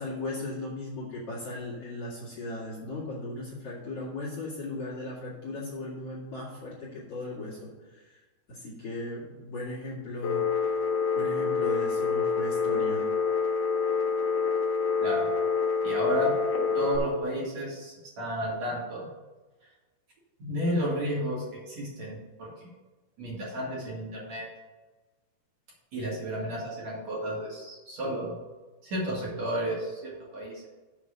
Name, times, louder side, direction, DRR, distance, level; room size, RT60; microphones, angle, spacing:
voice 1, 0.0-8.2 8.5-10.6 11.1-13.1, left 2 dB, 45° left, -7 dB, 2.6 m, -37 dB
Telephone, 10.2-17.0, left 5 dB, 85° left, 1.4 m, -27 dB
voice 2, 15.8-16.3 16.7-19.1 20.4-22.7 23.2-24.5 25.9-28.3 28.8-30.7, equal, 50° right, -5 dB, 2.8 m, -32 dB
7.4 x 5.9 x 6.5 m, 1.2 s
omnidirectional pair, 4.5 m